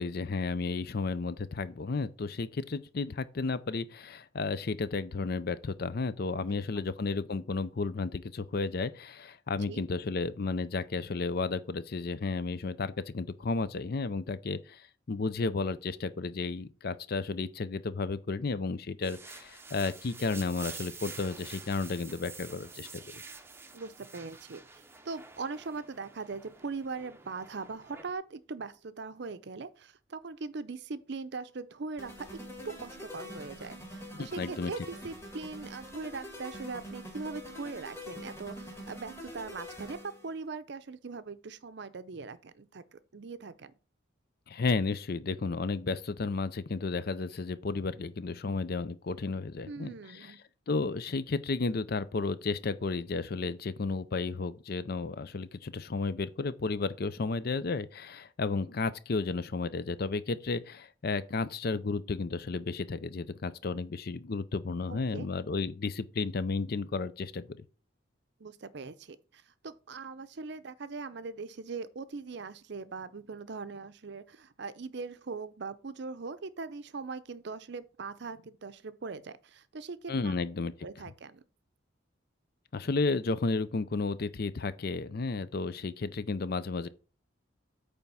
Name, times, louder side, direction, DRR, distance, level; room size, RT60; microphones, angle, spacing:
voice 1, 0.0-23.2 34.1-34.7 44.5-49.9 50.2-50.3 50.7-67.5 80.1-80.7 82.7-86.9, left 3 dB, 50° left, 0.5 m, -33 dB
voice 2, 6.5-6.9 9.7-9.8 23.7-32.3 32.8-43.7 49.7-50.4 64.9-65.3 68.4-80.3 80.8-81.4, right 4 dB, 60° right, 0.6 m, -41 dB
sound 1, 19.0-28.1, right 4 dB, 10° right, 0.7 m, -48 dB
sound 2, 32.0-40.3, equal, 15° left, 2.1 m, -45 dB
8.8 x 3.5 x 5.6 m
head